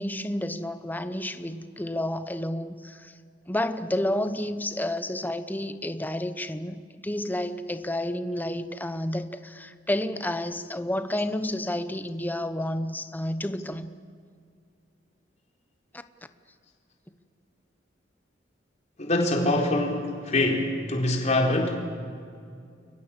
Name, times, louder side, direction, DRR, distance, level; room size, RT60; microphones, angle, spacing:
voice 1, 0.0-3.1 3.5-13.9 15.9-16.0, left 1 dB, 10° left, 10 dB, 0.9 m, -30 dB
voice 2, 19.0-21.8, left 1 dB, 40° left, 1 dB, 4.3 m, -24 dB
29.5 x 23.0 x 7.4 m, 2.3 s
head